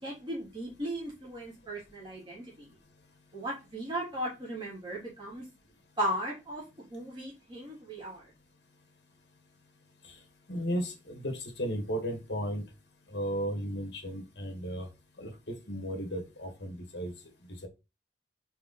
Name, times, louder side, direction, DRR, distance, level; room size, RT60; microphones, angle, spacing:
voice 1, 0.0-2.7 3.3-5.4 6.0-6.6 6.9-8.3, right 1 dB, 25° right, 3.4 m, -36 dB
voice 2, 10.5-12.6 13.1-14.9 15.2-17.1 17.6-17.7, equal, 75° left, 1.8 m, -35 dB
5.0 x 4.7 x 4.0 m
head